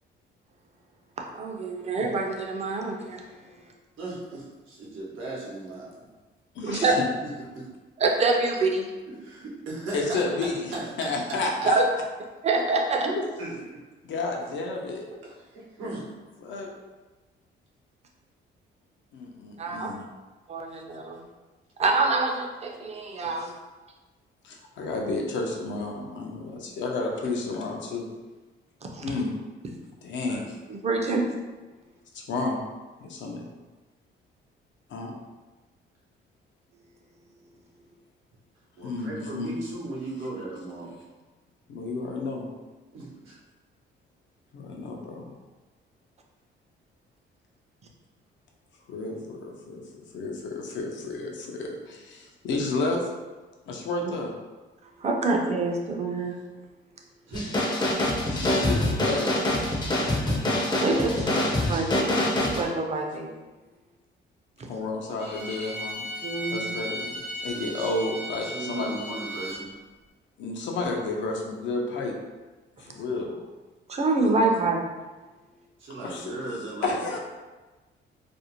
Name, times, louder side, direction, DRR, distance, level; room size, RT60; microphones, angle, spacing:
voice 1, 1.3-3.3 6.6-6.9 8.0-8.9 11.6-11.8 12.4-13.1 19.6-19.9 20.5-21.2 21.8-23.5 28.8-29.0 30.7-31.3 55.0-56.4 60.8-61.4 61.7-62.1 62.4-63.3 66.2-66.7 73.9-74.8, right 3 dB, 35° right, 1 dB, 0.4 m, -26 dB
voice 2, 4.0-5.9 7.5-7.7 9.1-10.2 10.7-11.7 13.0-13.1 13.4-13.5 15.2-16.1 30.3-30.4 38.8-41.0 42.9-43.4 57.2-57.6 67.5-67.9 68.4-69.8 75.8-77.2, right 2 dB, 85° right, -5 dB, 0.8 m, -37 dB
voice 3, 6.5-7.1 9.9-11.8 14.0-15.1 16.4-16.7 19.1-20.1 24.4-28.1 29.0-29.3 30.0-30.4 32.1-32.6 33.0-33.5 34.9-35.1 38.8-39.5 41.7-42.5 44.5-45.3 48.9-53.1 53.7-54.3 58.3-59.3 59.5-59.7 64.7-66.0 66.5-69.0 70.4-72.1 72.8-73.4 76.0-76.3 76.8-77.2, left 3 dB, 70° left, 0 dB, 0.5 m, -31 dB
sound 1, 57.3-62.6, left 1 dB, 20° left, 0.5 m, -25 dB
Bowed string instrument, 65.2-69.6, equal, 55° right, 0.8 m, -36 dB
2.5 x 2.0 x 2.9 m, 1.2 s
cardioid pair, 90°, 20 cm